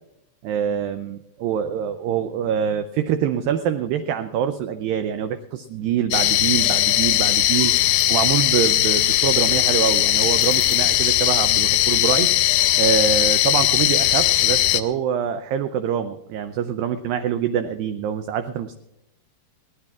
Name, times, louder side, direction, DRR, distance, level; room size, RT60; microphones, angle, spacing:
voice 1, 0.4-7.7 8.1-12.3 12.8-18.7, right 8 dB, 80° right, 9 dB, 2.1 m, -25 dB
sound 1, 6.1-14.8, left 14 dB, 80° left, 2.2 m, -19 dB
22.5 x 17.5 x 2.4 m, 0.85 s
omnidirectional pair, 4.6 m